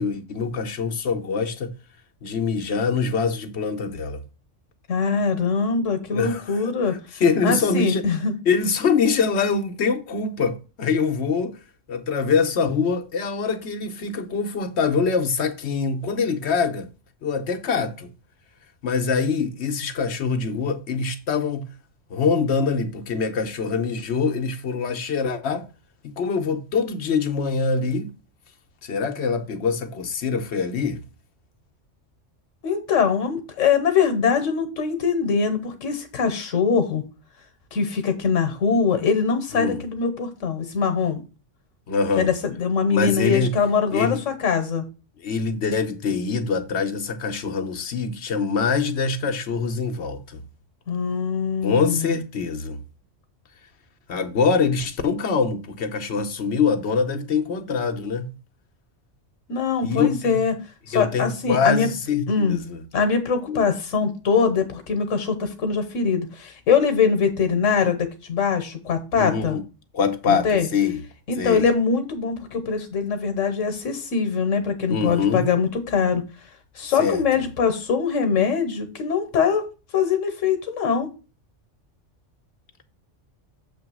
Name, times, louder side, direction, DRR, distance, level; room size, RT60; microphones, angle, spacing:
voice 1, 0.0-1.7 2.2-4.2 6.1-6.6 7.2-8.0 8.4-11.5 11.9-16.9 17.2-18.1 18.8-21.7 22.1-25.7 26.0-28.1 28.8-31.0 39.5-39.8 41.9-42.3 42.9-43.5 43.9-44.2 45.2-50.4 51.6-52.8 54.1-58.3 59.8-60.4 60.9-62.8 63.5-63.7 69.1-69.6 69.9-71.0 71.4-71.6 74.9-75.5 76.8-77.2, left 5 dB, 65° left, 1.1 m, -24 dB
voice 2, 4.9-6.9 7.4-8.3 32.6-37.0 37.7-41.2 42.2-44.8 50.9-52.1 59.5-60.5 60.9-61.9 62.3-62.6 62.9-69.6 70.3-70.7 71.3-76.2 76.7-79.7 79.9-81.1, left 6 dB, 85° left, 1.3 m, -22 dB
7.1 x 3.0 x 6.0 m
omnidirectional pair, 1.3 m